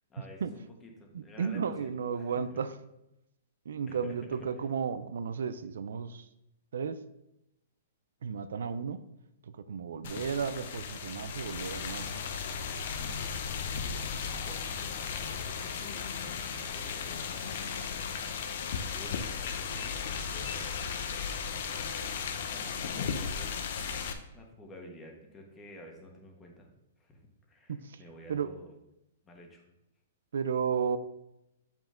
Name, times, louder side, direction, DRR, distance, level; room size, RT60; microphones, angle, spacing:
voice 1, 0.1-1.9 2.2-2.6 3.9-4.1 12.9-13.3 13.8-17.8 18.7-20.8 21.3-21.9 22.3-23.5 24.3-26.7 27.0-27.2 27.5-28.7 29.2-29.6, left 1 dB, 15° left, 1 dB, 1.3 m, -51 dB
voice 2, 1.1-2.7 3.7-6.3 6.7-7.0 8.2-9.0 9.4-12.2 27.7-28.0 28.3-28.5 30.3-31.0, right 6 dB, 80° right, 13 dB, 0.5 m, -33 dB
sound 1, 10.0-24.1, left 6 dB, 55° left, 0.7 m, -36 dB
7.1 x 5.5 x 3.8 m, 0.86 s
hypercardioid pair, 160°, 0 cm